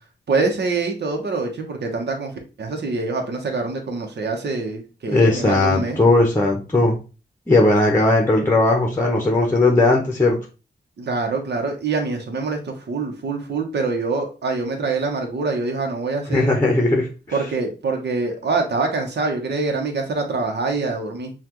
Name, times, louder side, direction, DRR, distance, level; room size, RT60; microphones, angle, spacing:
voice 1, 0.3-2.3 2.6-6.0 11.0-16.5 17.3-21.3, right 3 dB, 70° right, 2 dB, 1.0 m, -25 dB
voice 2, 5.1-7.0 7.5-10.4 16.3-17.1, left 2 dB, 15° left, 1 dB, 0.8 m, -17 dB
5.6 x 2.4 x 3.0 m, 0.32 s
wide cardioid pair, 110°, 18 cm